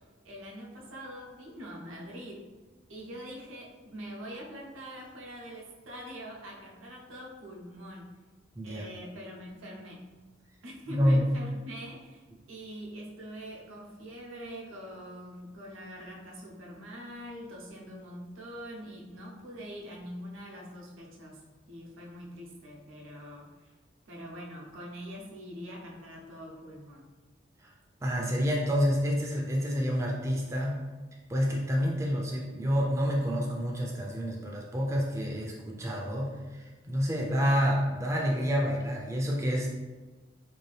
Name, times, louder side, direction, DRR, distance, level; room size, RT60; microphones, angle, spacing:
voice 1, 0.2-2.5 2.9-8.1 8.6-10.0 10.6-21.4 21.7-23.7 24.1-27.1, equal, 90° right, -2 dB, 0.7 m, -44 dB
voice 2, 10.9-11.3 27.6-27.7 28.0-30.8 31.3-39.7, equal, 15° right, -2 dB, 0.3 m, -28 dB
2.7 x 2.4 x 3.2 m, 1.3 s
head